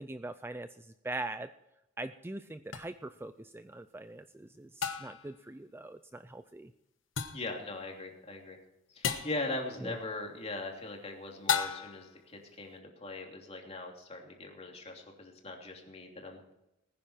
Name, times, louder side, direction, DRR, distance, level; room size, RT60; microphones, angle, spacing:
voice 1, 0.0-1.5 2.0-6.7 9.8-9.9, right 2 dB, 10° right, 11 dB, 0.4 m, -42 dB
sound 1, 2.7-2.8 4.8-5.3 7.2-7.5 9.0-9.4 11.5-12.1, left 7 dB, 70° left, 1.2 m, -33 dB
voice 2, 7.3-8.6 8.9-16.5, left 2 dB, 30° left, 1 dB, 3.0 m, -40 dB
20.0 x 10.0 x 4.4 m, 0.88 s
head